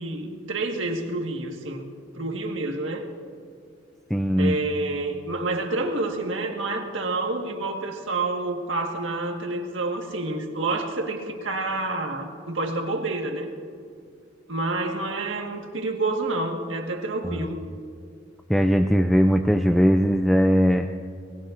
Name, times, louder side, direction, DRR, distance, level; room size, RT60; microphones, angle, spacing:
voice 1, 0.0-1.9 2.1-3.1 4.4-13.5 14.5-17.6, right 2 dB, 80° right, 3 dB, 1.6 m, -28 dB
voice 2, 4.1-4.6 17.2-17.5 18.5-20.9, equal, ahead, 5 dB, 0.4 m, -20 dB
22.0 x 19.5 x 2.6 m, 2.3 s
head